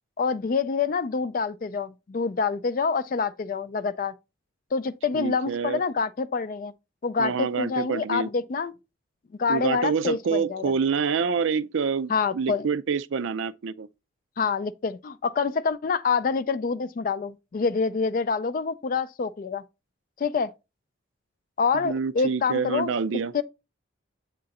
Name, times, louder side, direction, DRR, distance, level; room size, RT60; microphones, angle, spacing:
voice 1, 0.2-4.1 4.7-6.7 7.0-8.7 9.4-10.7 12.1-12.7 14.4-19.6 20.2-20.5 21.6-22.9 23.3-23.4, left 5 dB, 45° left, 0.3 m, -26 dB
voice 2, 5.1-5.8 7.2-8.3 9.5-13.9 21.8-23.3, right 5 dB, 75° right, 0.4 m, -27 dB
7.7 x 3.8 x 4.1 m
head